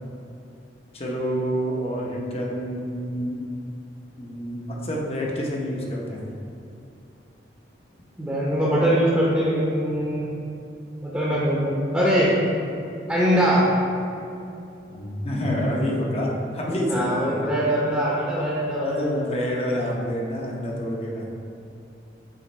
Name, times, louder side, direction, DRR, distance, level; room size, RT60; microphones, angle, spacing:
voice 1, 0.9-3.4 4.2-6.3 14.9-17.5 18.8-21.3, equal, 35° left, -2 dB, 0.7 m, -28 dB
voice 2, 8.2-10.3 11.0-12.3 13.1-13.7 16.9-19.3, equal, 10° right, -7 dB, 0.8 m, -22 dB
7.5 x 3.1 x 4.2 m, 2.7 s
head